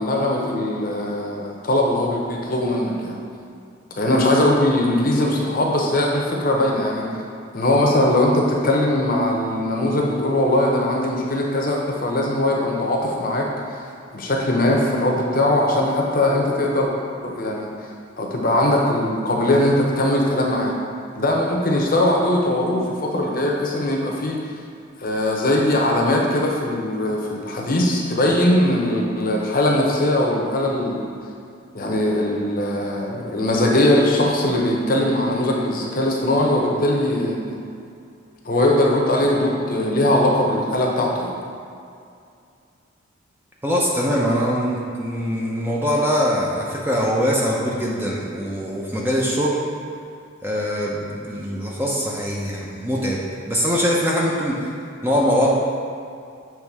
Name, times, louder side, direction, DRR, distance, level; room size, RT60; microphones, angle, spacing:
voice 1, 0.0-3.2 4.0-7.1 7.5-13.8 14.1-16.9 17.2-17.7 18.2-20.8 21.1-24.4 25.0-31.0 31.7-37.6 38.4-41.3, left 1 dB, 45° left, -1 dB, 0.7 m, -20 dB
voice 2, 43.6-49.6 50.4-54.7 55.0-55.5, equal, 10° right, -4 dB, 0.5 m, -22 dB
7.1 x 3.2 x 4.7 m, 2.4 s
head